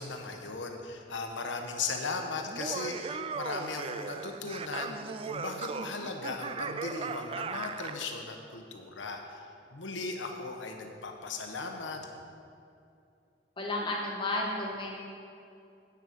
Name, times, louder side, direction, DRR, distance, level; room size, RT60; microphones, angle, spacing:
voice 1, 0.0-12.1, left 3 dB, 85° left, 3 dB, 1.1 m, -37 dB
Laughter, 2.5-8.1, right 5 dB, 30° right, 0.3 m, -37 dB
voice 2, 13.6-15.0, left 2 dB, 25° left, -2 dB, 1.5 m, -32 dB
9.4 x 7.9 x 5.2 m, 2.6 s
head